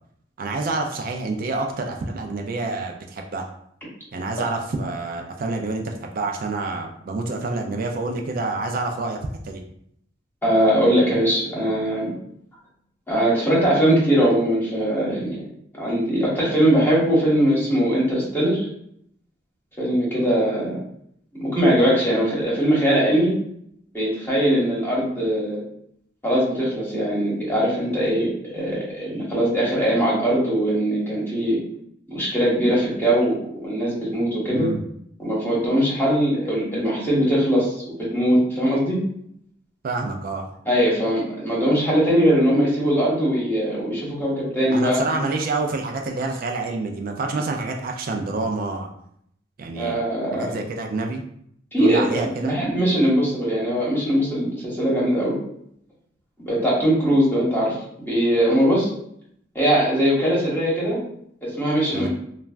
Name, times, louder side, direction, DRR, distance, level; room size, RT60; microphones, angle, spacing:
voice 1, 0.4-3.5 4.1-9.2 9.4-9.6 34.5-34.8 39.8-40.5 44.7-48.9 49.6-50.0 50.3-51.2 51.8-52.6 61.9-62.1, right 3 dB, 50° right, 3 dB, 0.3 m, -27 dB
voice 2, 10.4-12.1 13.1-15.4 15.8-18.7 19.8-20.8 21.3-23.3 23.9-25.6 26.2-31.6 32.1-34.7 35.2-39.0 40.6-45.1 49.8-50.6 51.7-55.4 56.4-57.8 58.0-58.9 59.5-61.0 61.4-62.1, equal, 10° left, -6 dB, 1.1 m, -21 dB
3.1 x 2.2 x 2.4 m, 0.71 s
head